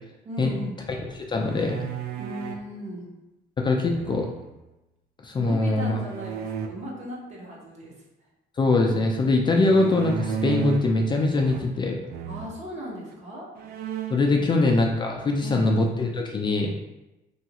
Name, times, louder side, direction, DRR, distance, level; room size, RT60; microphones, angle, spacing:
voice 1, 0.2-0.8 2.2-3.1 5.3-8.0 12.2-13.5 15.4-15.7, right 1 dB, 40° right, -3 dB, 0.9 m, -37 dB
voice 2, 1.2-1.9 3.6-4.3 5.2-6.0 8.6-12.0 14.1-16.7, left 2 dB, 25° left, 1 dB, 0.4 m, -22 dB
sound 1, 1.3-2.7 3.9-4.6 6.1-6.7 9.6-11.0 11.3-11.8 12.1-12.5 13.1-13.2 13.6-14.3, right 8 dB, 65° right, 0.4 m, -33 dB
2.9 x 2.3 x 2.9 m, 0.98 s
cardioid pair, 110°, 17 cm